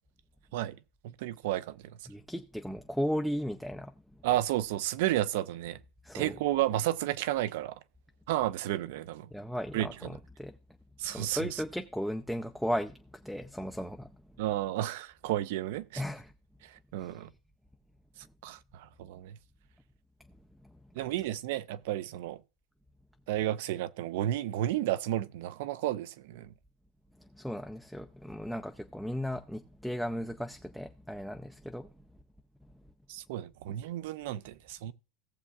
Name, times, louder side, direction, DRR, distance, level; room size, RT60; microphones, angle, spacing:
voice 1, 1.0-1.8 4.2-5.8 6.1-7.8 8.3-9.3 9.7-10.1 11.0-11.6 14.4-16.0 16.6-17.3 18.4-19.4 21.0-22.4 23.3-26.5 33.1-34.9, right 13 dB, 80° right, 0.5 m, -32 dB
voice 2, 2.1-3.9 6.0-6.4 9.3-10.5 11.1-13.0 13.2-14.1 16.0-16.3 17.0-17.2 21.0-21.1 27.3-31.9, equal, ahead, 0.4 m, -36 dB
17.5 x 7.1 x 2.4 m
supercardioid pair, 145°, 0 cm